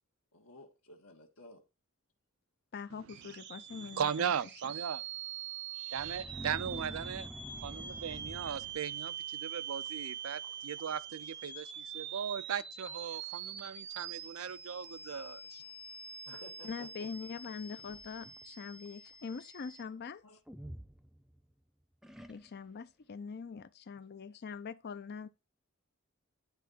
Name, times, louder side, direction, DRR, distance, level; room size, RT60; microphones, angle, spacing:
voice 1, 0.3-1.6 3.3-3.4 6.7-6.9 16.2-17.1 20.2-20.4, left 1 dB, 75° left, 1.3 m, -54 dB
voice 2, 2.7-4.3 16.6-20.2 22.3-25.3, left 5 dB, 50° left, 0.5 m, -43 dB
sound 1, 3.1-19.8, right 8 dB, 55° right, 0.8 m, -44 dB
voice 3, 3.7-5.0 5.8-7.3 7.6-15.6, right 7 dB, 80° right, 0.5 m, -38 dB
sound 2, 5.9-9.2 9.9-10.1 10.4-10.9 11.1-11.2 12.0-12.1 12.6-12.7 13.2-13.7 14.5-14.6 17.4-18.4 20.5-21.5 22.0-22.8, equal, ahead, 0.5 m, -48 dB
10.5 x 3.7 x 3.9 m
head